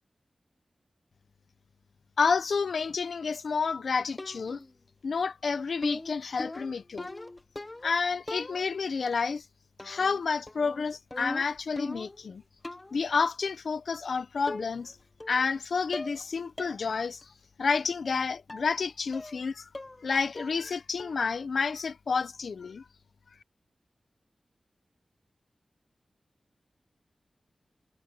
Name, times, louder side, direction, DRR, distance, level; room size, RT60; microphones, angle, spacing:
voice 1, 2.2-4.6 5.0-7.1 7.8-9.4 9.8-12.4 12.9-15.0 15.3-17.3 17.6-19.7 20.0-22.8, left 5 dB, 85° left, 1.0 m, -30 dB
sound 1, 4.2-4.7 5.8-8.0 8.3-8.9 9.8-10.2 10.5-12.3 12.6-13.0 14.0-14.1 14.5-14.9 15.2-15.6 15.9-16.3 16.6-16.8 17.2-17.3 18.5-18.7 19.1-19.4 19.7-20.1 20.4-20.7 21.0-21.3, left 2 dB, 25° left, 1.2 m, -40 dB
wide cardioid pair, 85°, 0 cm